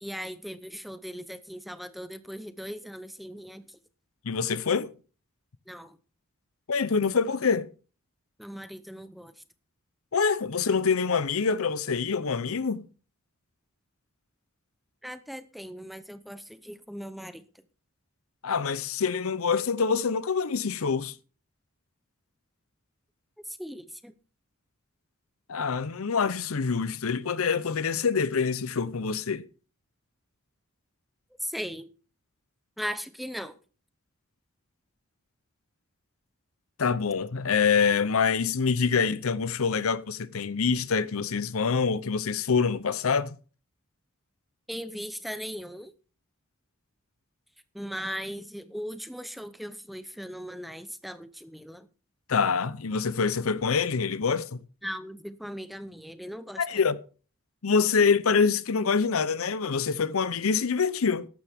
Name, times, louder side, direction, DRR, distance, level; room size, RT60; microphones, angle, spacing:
voice 1, 0.0-3.8 5.7-6.0 8.4-9.3 15.0-17.5 23.5-24.1 31.4-31.9 32.8-33.6 44.7-45.9 47.7-51.9 54.8-56.8, equal, ahead, 0.7 m, -38 dB
voice 2, 4.2-4.9 6.7-7.7 10.1-12.9 18.4-21.2 25.5-29.5 36.8-43.4 52.3-54.6 56.6-57.0 57.6-61.3, left 5 dB, 80° left, 0.7 m, -25 dB
14.5 x 11.5 x 3.5 m
head